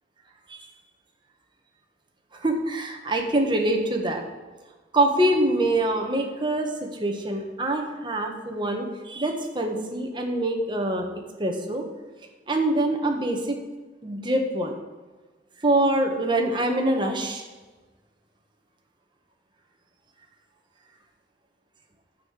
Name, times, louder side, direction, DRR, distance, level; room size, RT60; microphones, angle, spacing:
voice 1, 2.4-4.2 4.9-11.1 11.4-11.8 12.5-13.6 14.0-14.7 15.6-17.4, right 1 dB, 25° right, 2 dB, 1.6 m, -24 dB
10.5 x 7.8 x 6.6 m, 1.3 s
head